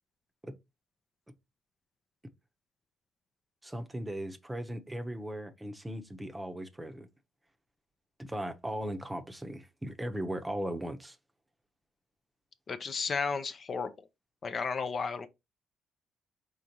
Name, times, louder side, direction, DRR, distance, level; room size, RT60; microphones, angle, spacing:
voice 1, 3.6-7.1 8.2-11.2, right 1 dB, 10° right, 0.8 m, -38 dB
voice 2, 12.7-13.9 14.4-15.3, left 5 dB, 45° left, 0.5 m, -33 dB
5.1 x 3.6 x 2.8 m
cardioid pair, 90°, 0 cm